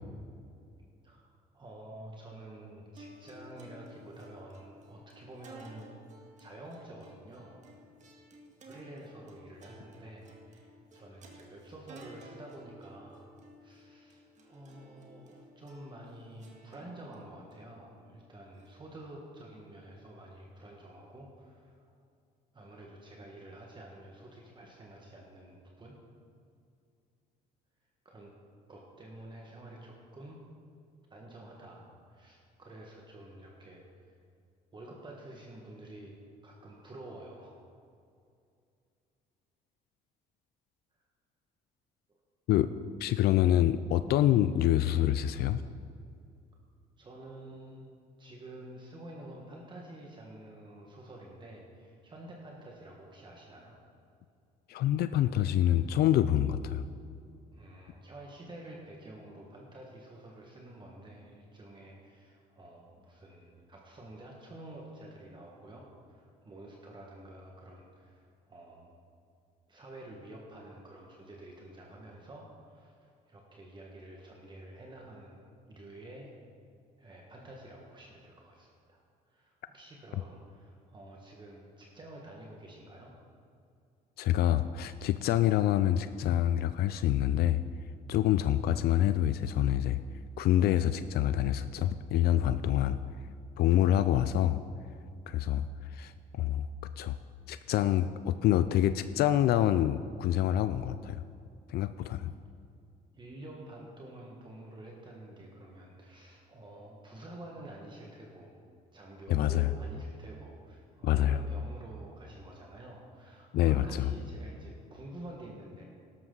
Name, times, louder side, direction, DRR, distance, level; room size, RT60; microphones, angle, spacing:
voice 1, 1.5-6.0 6.4-7.6 8.6-13.3 13.6-21.8 22.5-26.0 28.0-28.3 28.7-30.4 31.1-34.2 34.7-37.6 47.0-47.9 48.2-53.8 57.5-69.0 69.7-76.3 77.0-79.0 79.3-83.1 103.1-108.5 108.9-115.8, right 1 dB, 25° right, -1 dB, 1.6 m, -49 dB
sound 1, 3.0-19.4, right 1 dB, 45° right, 1.9 m, -55 dB
voice 2, 43.0-45.6 54.7-56.8 84.2-87.6 88.1-90.0 90.4-93.0 93.6-94.6 95.3-95.7 95.9-96.7 97.0-97.2 97.5-101.2 101.7-102.3 109.3-109.7 111.0-111.4 113.5-114.1, left 12 dB, 70° left, 12 dB, 0.4 m, -26 dB
12.5 x 12.0 x 4.0 m, 2.4 s
cardioid pair, 110°, 17 cm